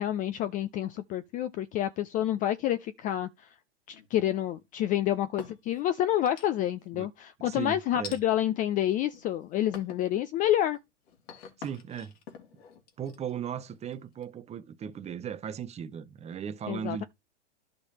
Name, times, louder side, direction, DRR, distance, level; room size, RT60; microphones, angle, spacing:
voice 1, 0.0-3.5 3.9-10.8 16.7-17.0, left 12 dB, 25° left, 0.4 m, -28 dB
sound 1, 3.9-4.6 5.1-5.8 6.3-6.9 8.0-8.2 8.9-9.3 9.7-10.1 10.6-14.2, left 7 dB, 60° left, 2.8 m, -47 dB
voice 2, 7.4-8.1 11.6-12.1 13.0-17.0, right 8 dB, 20° right, 0.9 m, -37 dB
11.5 x 5.3 x 4.2 m
hypercardioid pair, 120°, 35 cm